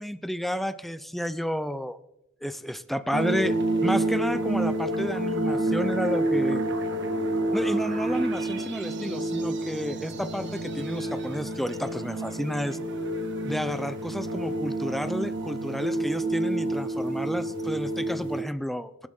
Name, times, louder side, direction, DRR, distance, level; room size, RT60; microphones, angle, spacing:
voice 1, 0.0-2.0 2.4-6.6 7.5-12.8 13.4-19.1, equal, ahead, 12 dB, 0.7 m, -31 dB
sound 1, 3.1-18.4, right 1 dB, 60° right, 1.9 m, -28 dB
25.0 x 12.0 x 3.8 m, 0.85 s
head